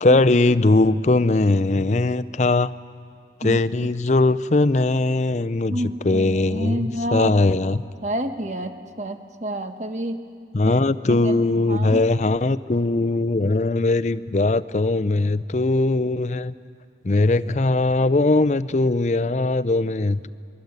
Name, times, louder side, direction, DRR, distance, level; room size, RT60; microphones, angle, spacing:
voice 1, 0.0-2.7 3.4-5.8 6.1-7.8 10.5-16.5 17.0-20.3, left 2 dB, 40° left, 15 dB, 0.5 m, -20 dB
voice 2, 5.7-7.3 8.0-10.2 10.6-10.8 11.1-12.0, right 1 dB, 40° right, 7 dB, 1.3 m, -29 dB
22.5 x 22.5 x 8.2 m, 2.3 s
head